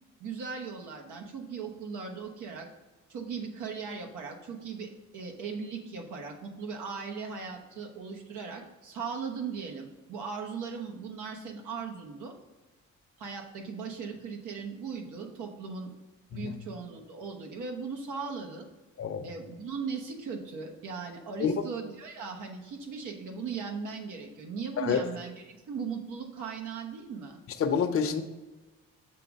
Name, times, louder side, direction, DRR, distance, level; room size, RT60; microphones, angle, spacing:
voice 1, 0.2-2.7 3.1-12.4 13.2-15.9 16.3-18.7 19.2-27.4, right 5 dB, 85° right, 2 dB, 1.2 m, -38 dB
voice 2, 27.6-28.2, left 6 dB, 45° left, 6 dB, 0.7 m, -27 dB
6.8 x 3.6 x 5.2 m, 1.2 s
cardioid pair, 90°, 30 cm